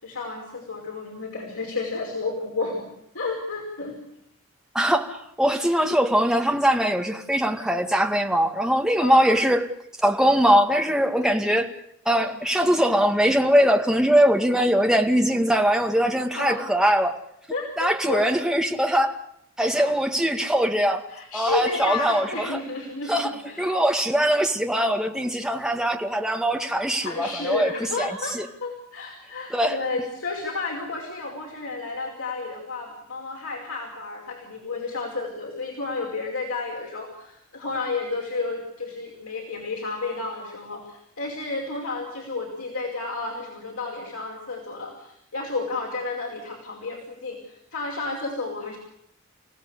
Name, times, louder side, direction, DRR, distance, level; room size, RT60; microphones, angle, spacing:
voice 1, 0.0-2.9 3.1-4.0 9.0-9.4 10.2-10.4 11.2-11.4 12.1-12.3 14.6-14.7 16.4-16.7 17.5-18.2 19.7-20.0 21.1-23.8 27.0-48.8, left 3 dB, 85° left, -1 dB, 5.4 m, -32 dB
voice 2, 4.7-9.7 10.0-11.7 12.1-17.2 17.8-19.2 19.6-21.1 21.3-22.6 23.1-23.3 23.6-27.7 28.0-28.5 29.5-29.8, equal, 5° right, 2 dB, 2.1 m, -21 dB
30.0 x 17.0 x 8.3 m, 0.77 s
head